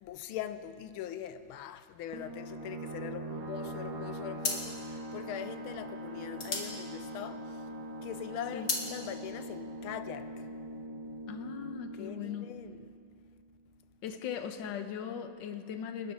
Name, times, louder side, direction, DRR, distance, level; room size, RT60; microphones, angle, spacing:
voice 1, 0.0-7.7 8.0-10.5 11.9-12.9, left 10 dB, 85° left, 1.5 m, -42 dB
sound 1, 2.1-13.4, right 1 dB, 80° right, 2.3 m, -42 dB
sound 2, 3.7-4.0 4.4-7.7 8.1-8.9, left 3 dB, 45° left, 2.0 m, -36 dB
voice 2, 11.3-12.5 14.0-16.1, left 8 dB, 65° left, 1.5 m, -39 dB
27.5 x 12.5 x 3.6 m
omnidirectional pair, 2.3 m